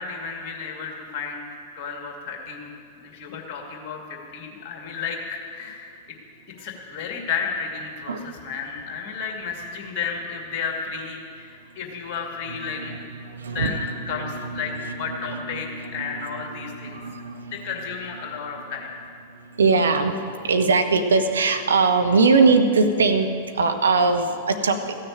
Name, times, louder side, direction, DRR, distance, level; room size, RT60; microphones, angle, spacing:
voice 1, 0.0-1.5 1.8-6.0 6.6-12.9 13.5-17.0 17.5-18.9, left 5 dB, 40° left, 1 dB, 2.3 m, -32 dB
voice 2, 12.5-17.6 19.6-20.2 20.4-23.3 23.5-24.8, right 4 dB, 70° right, 6 dB, 0.9 m, -22 dB
15.0 x 6.7 x 8.6 m, 2.4 s
figure-of-eight pair, 95°, 0 cm